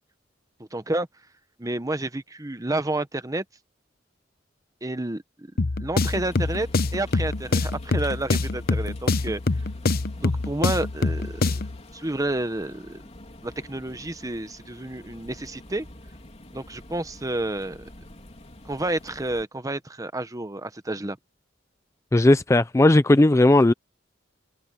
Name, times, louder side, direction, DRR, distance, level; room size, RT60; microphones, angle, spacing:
voice 1, 0.7-1.1 1.6-3.4 4.8-5.5 5.8-9.4 10.1-11.6 11.9-13.0 13.4-15.9 16.5-17.8 18.6-21.2, right 2 dB, 20° right, 1.1 m, -30 dB
sound 1, 5.6-11.8, left 3 dB, 50° left, 0.9 m, -25 dB
sound 2, 6.0-19.4, left 1 dB, 35° left, 3.7 m, -47 dB
voice 2, 22.1-23.7, left 2 dB, 15° left, 0.4 m, -16 dB
head